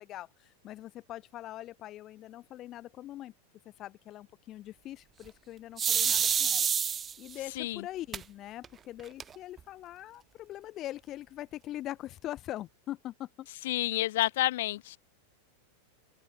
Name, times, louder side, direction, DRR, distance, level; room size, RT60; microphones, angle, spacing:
voice 1, 0.0-3.3 3.6-13.5, left 14 dB, 35° left, 2.3 m, -42 dB
sound 1, 5.8-7.3 8.1-8.2 8.6-8.7 9.0-9.6, right 7 dB, 20° right, 0.6 m, -27 dB
voice 2, 13.6-15.0, left 16 dB, 55° left, 0.7 m, -29 dB
open air
figure-of-eight pair, 90°, 0 cm